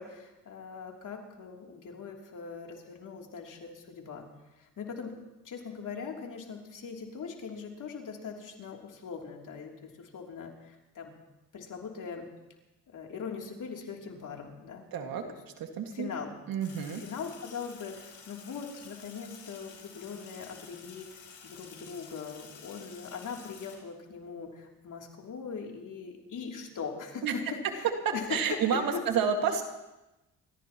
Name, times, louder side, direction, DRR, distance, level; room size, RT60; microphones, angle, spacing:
voice 1, 0.0-4.3 4.6-5.1 5.4-11.2 11.5-12.3 12.9-14.9 15.2-15.4 15.9-16.4 17.0-27.4 27.7-29.0, left 6 dB, 65° left, 0 dB, 3.1 m, -41 dB
voice 2, 14.9-15.2 15.6-16.1 16.5-17.0 27.2-27.4 28.0-29.6, right 6 dB, 80° right, 4 dB, 2.1 m, -29 dB
Sink (filling or washing), 16.6-23.7, left 6 dB, 80° left, 4.8 m, -51 dB
28.5 x 15.0 x 3.0 m, 1.0 s
cardioid pair, 75°, 34 cm